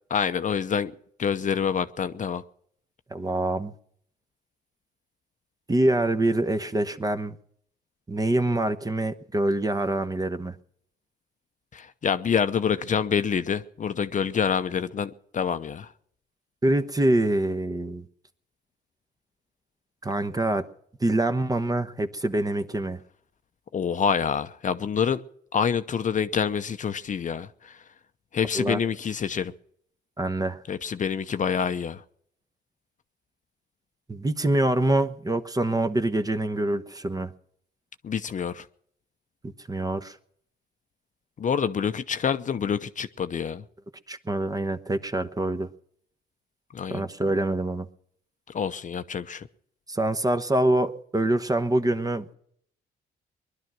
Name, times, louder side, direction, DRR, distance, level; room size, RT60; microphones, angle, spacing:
voice 1, 0.1-2.4 11.7-15.9 23.7-25.2 25.5-27.8 28.3-29.5 30.7-32.0 38.0-38.7 41.4-43.6 46.7-47.0 48.5-49.5, left 7 dB, 45° left, 0.8 m, -27 dB
voice 2, 3.1-3.7 5.7-7.4 8.1-10.5 16.6-18.1 20.0-20.7 21.0-23.0 28.5-28.8 30.2-30.6 34.1-37.3 39.4-40.2 44.1-45.7 46.9-47.9 49.9-52.3, right 1 dB, 20° right, 1.1 m, -25 dB
20.5 x 11.5 x 6.1 m
cardioid pair, 85°, 18 cm